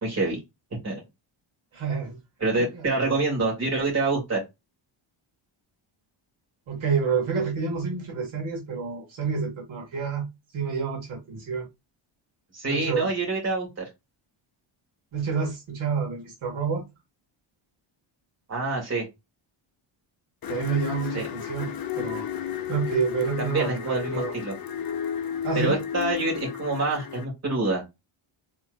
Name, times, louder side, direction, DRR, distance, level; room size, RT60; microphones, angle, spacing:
voice 1, 0.0-0.4 0.8-1.0 2.4-4.4 12.5-13.8 18.5-19.0 21.1-21.3 23.4-24.5 25.5-27.8, right 3 dB, 30° right, 2.2 m, -26 dB
voice 2, 1.7-2.2 2.6-2.9 6.7-10.3 10.5-11.7 12.6-13.1 15.1-16.8 20.5-21.7 22.0-22.3 22.7-24.3 25.4-25.8, right 5 dB, 70° right, 1.9 m, -28 dB
sound 1, 20.4-27.2, left 8 dB, 45° left, 0.8 m, -32 dB
4.3 x 3.5 x 2.4 m
cardioid pair, 140°, 50 cm